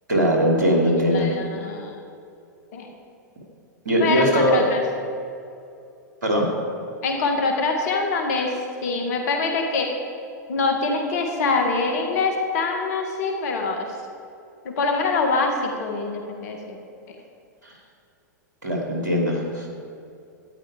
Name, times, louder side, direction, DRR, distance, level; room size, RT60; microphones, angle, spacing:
voice 1, 0.1-1.3 3.8-4.6 6.2-6.5 18.6-19.7, equal, 80° right, 0 dB, 2.7 m, -20 dB
voice 2, 1.0-1.9 2.7-2.9 4.0-4.8 7.0-9.9 10.5-13.9 14.6-16.8 17.1-17.2, left 3 dB, 60° left, 3 dB, 1.6 m, -24 dB
12.5 x 9.7 x 4.9 m, 2.6 s
hypercardioid pair, 100°, 10 cm